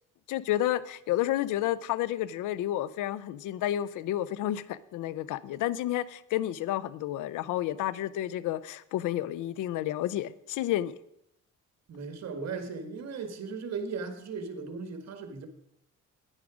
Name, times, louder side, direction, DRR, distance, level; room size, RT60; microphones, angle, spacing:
voice 1, 0.3-10.9, left 13 dB, 85° left, 0.6 m, -30 dB
voice 2, 11.9-15.5, right 5 dB, 60° right, 1.8 m, -37 dB
9.7 x 9.7 x 5.0 m
cardioid pair, 90°, 30 cm